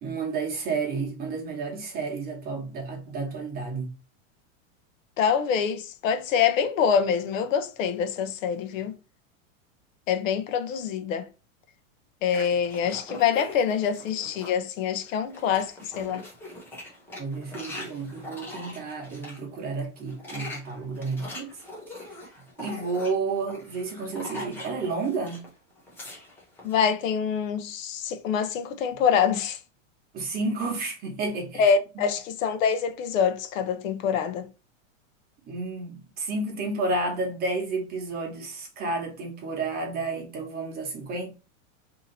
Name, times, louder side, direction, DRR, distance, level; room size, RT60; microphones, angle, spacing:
voice 1, 0.0-3.9 17.2-21.6 22.0-22.1 22.6-25.5 30.1-32.1 35.5-41.3, right 3 dB, 25° right, 1.1 m, -31 dB
voice 2, 5.2-8.9 10.1-11.3 12.2-16.2 26.6-29.6 31.6-34.5, left 7 dB, 75° left, 0.7 m, -25 dB
sound 1, 12.3-14.6 15.0-19.4 20.0-25.5 25.8-26.8, left 1 dB, 5° left, 0.3 m, -42 dB
2.8 x 2.7 x 3.9 m
supercardioid pair, 150°, 40 cm